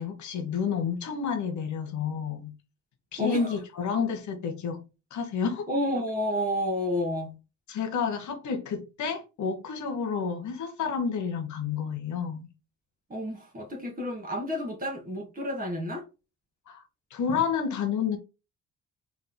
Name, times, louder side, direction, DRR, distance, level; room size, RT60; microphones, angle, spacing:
voice 1, 0.0-2.5 3.1-4.8 5.1-5.7 7.7-12.5 16.7-16.8 17.1-18.2, left 6 dB, 70° left, 1.2 m, -30 dB
voice 2, 3.2-3.6 5.7-7.4 13.1-16.0, left 1 dB, 30° right, 1.8 m, -30 dB
4.3 x 3.7 x 2.2 m
cardioid pair, 90°, 30 cm